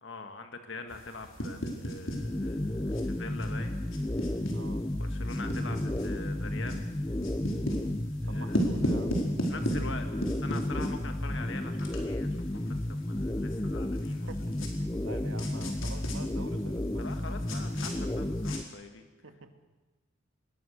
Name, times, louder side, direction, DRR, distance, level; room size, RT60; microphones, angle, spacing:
voice 1, 0.0-3.8 5.0-6.9 8.2-8.6 9.4-14.3 15.1-15.2 17.0-19.0, left 3 dB, 65° left, 6 dB, 1.9 m, -44 dB
sound 1, 0.9-18.6, equal, 85° left, 4.9 m, -38 dB
sound 2, 2.1-18.6, left 1 dB, 15° left, 0.6 m, -32 dB
voice 2, 4.5-4.8 8.3-9.2 9.5-10.2 14.0-17.1 19.2-19.6, right 2 dB, 80° right, 7 dB, 2.2 m, -48 dB
25.0 x 20.5 x 6.7 m, 1.2 s
head